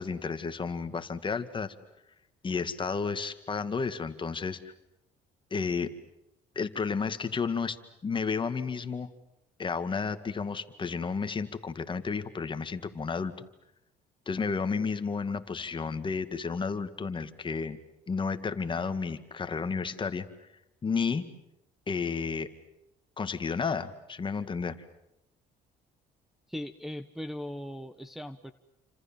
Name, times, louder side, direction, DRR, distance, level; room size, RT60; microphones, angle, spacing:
voice 1, 0.0-1.7 2.4-4.7 5.5-5.9 6.6-7.8 8.0-9.1 9.6-13.3 14.3-17.8 18.1-20.3 20.8-21.2 21.9-22.5 23.2-24.8, left 5 dB, 30° left, 9 dB, 2.1 m, -32 dB
voice 2, 26.5-28.5, left 1 dB, ahead, 6 dB, 1.1 m, -39 dB
29.5 x 26.5 x 7.4 m, 0.83 s
cardioid pair, 110°, 17 cm